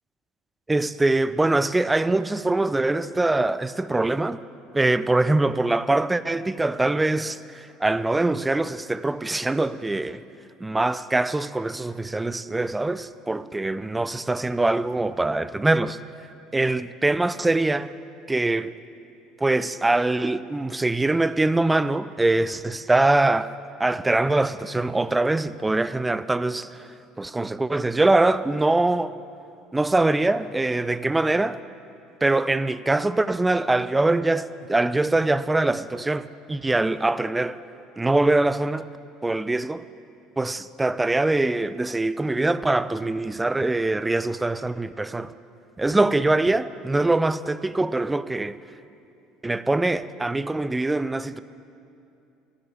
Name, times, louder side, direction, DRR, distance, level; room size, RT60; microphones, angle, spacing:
voice 1, 0.7-4.4 4.7-10.2 10.6-16.0 16.5-17.9 18.3-18.7 19.4-23.5 23.8-26.9 27.2-29.2 29.7-31.6 32.2-37.6 38.0-38.9 39.2-39.9 40.4-45.3 45.8-48.6 49.4-51.4, right 2 dB, 15° right, 0.4 m, -23 dB
11.5 x 6.8 x 9.7 m
figure-of-eight pair, 60°, 0 cm